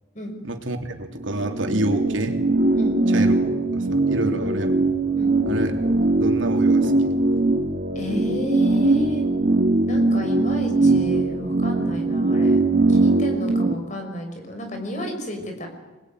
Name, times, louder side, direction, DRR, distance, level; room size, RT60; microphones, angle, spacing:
voice 1, 0.4-2.4 3.1-3.4 3.7-4.8 5.4-5.8 6.2-7.1, right 1 dB, 85° right, 5 dB, 3.1 m, -28 dB
sound 1, 1.2-13.7, right 2 dB, 50° right, 1.8 m, -21 dB
voice 2, 8.0-9.3 9.9-12.6 12.9-15.7, equal, 40° left, 4 dB, 5.6 m, -31 dB
26.0 x 20.5 x 9.5 m, 1.1 s
head